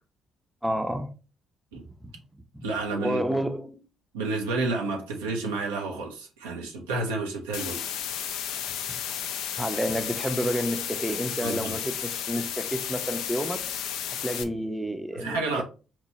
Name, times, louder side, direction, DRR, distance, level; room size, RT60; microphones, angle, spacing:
voice 1, 0.6-1.1 2.0-2.7 3.0-3.8 9.6-13.6 14.2-15.6, equal, 5° right, 0.5 m, -30 dB
voice 2, 2.6-3.2 4.1-7.8 11.4-11.7 15.1-15.6, right 3 dB, 80° right, 0.5 m, -30 dB
sound 1, 7.5-14.4, left 9 dB, 70° left, 0.3 m, -33 dB
2.9 x 2.2 x 4.1 m
hypercardioid pair, 45°, 0 cm